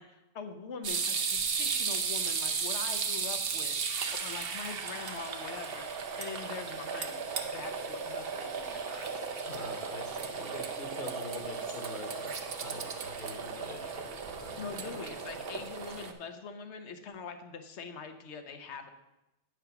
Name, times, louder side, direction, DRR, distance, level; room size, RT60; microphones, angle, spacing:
voice 1, 0.0-3.8 4.2-5.8 6.2-9.1 14.6-18.9, left 5 dB, 70° left, 8 dB, 1.1 m, -43 dB
sound 1, 0.8-16.1, right 5 dB, 55° right, 0.9 m, -35 dB
voice 2, 9.5-12.9 13.2-15.0 15.3-15.7, left 3 dB, 45° left, 4 dB, 1.3 m, -46 dB
9.0 x 4.8 x 5.8 m, 0.97 s
omnidirectional pair, 1.2 m